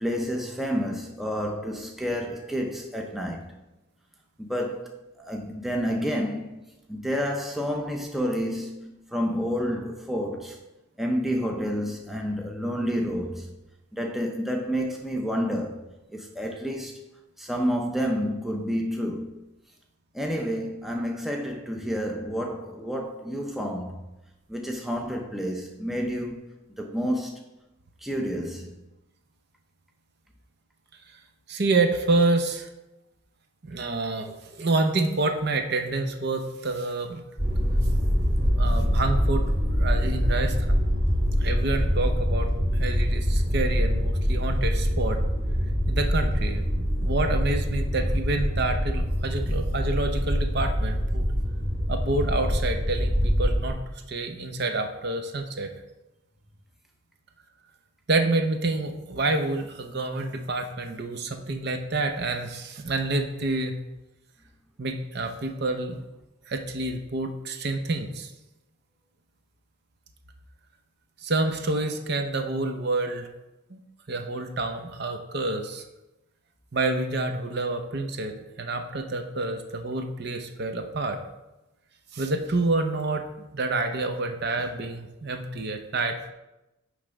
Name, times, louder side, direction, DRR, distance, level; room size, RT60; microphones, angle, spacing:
voice 1, 0.0-3.4 4.4-6.6 6.9-10.6 11.0-13.5 13.9-15.8 16.1-17.0 17.4-19.4 20.1-24.0 24.5-26.4 26.8-27.4 28.0-28.7, equal, ahead, 0.5 m, -29 dB
voice 2, 31.5-32.7 33.6-37.2 38.6-40.8 41.4-42.5 42.7-45.2 45.9-51.3 51.9-53.8 54.1-55.7 58.1-63.8 64.8-66.0 66.5-68.3 71.2-73.3 73.7-73.8 74.1-75.8 76.7-81.2 82.1-86.3, right 2 dB, 50° right, 0.7 m, -28 dB
sound 1, 37.4-53.7, equal, 30° right, 2.1 m, -24 dB
9.5 x 3.3 x 5.1 m
head